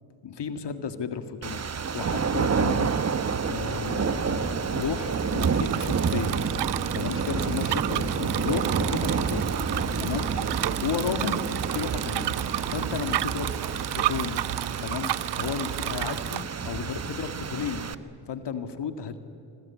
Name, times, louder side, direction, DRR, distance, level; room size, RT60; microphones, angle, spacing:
voice 1, 0.2-1.6 1.9-2.9 3.5-6.4 6.9-9.5 10.0-10.3 10.8-11.4 11.7-12.4 12.7-13.6 13.9-14.5 14.8-17.8 18.3-19.2, left 6 dB, 55° left, 9 dB, 2.0 m, -33 dB
sound 1, 1.4-17.9, right 6 dB, 30° right, 1.1 m, -29 dB
sound 2, 3.5-10.8, left 2 dB, 10° left, 0.8 m, -40 dB
Bicycle, 4.7-16.4, right 14 dB, 55° right, 0.6 m, -32 dB
25.0 x 24.5 x 8.5 m, 2.8 s
cardioid pair, 75°, 50 cm